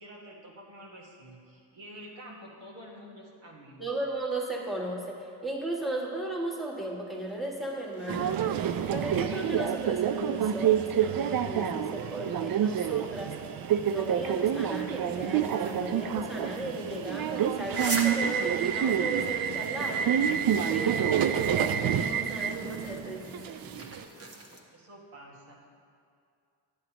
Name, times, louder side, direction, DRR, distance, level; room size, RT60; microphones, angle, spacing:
voice 1, 0.0-3.9 24.7-25.6, equal, 70° right, -3 dB, 1.6 m, -48 dB
voice 2, 3.8-13.4 13.9-20.4 20.7-23.5, right 2 dB, ahead, -3 dB, 1.5 m, -36 dB
sound 1, 7.1-24.6, right 2 dB, 30° right, 1.1 m, -44 dB
Subway metro underground, 8.1-24.0, right 9 dB, 50° right, 0.5 m, -28 dB
9.7 x 7.8 x 2.9 m, 2.4 s
supercardioid pair, 50°, 46 cm